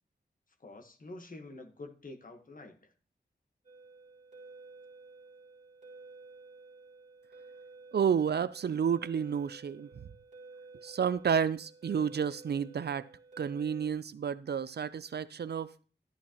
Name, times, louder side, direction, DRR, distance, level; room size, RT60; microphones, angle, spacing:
voice 1, 0.6-2.9, left 2 dB, 45° left, 1.2 m, -47 dB
sound 1, 3.6-13.9, right 3 dB, 40° right, 2.1 m, -52 dB
voice 2, 7.9-9.9 10.8-13.1 13.4-15.7, right 7 dB, 60° right, 0.4 m, -30 dB
12.0 x 8.7 x 2.9 m
wide cardioid pair, 65°, 19 cm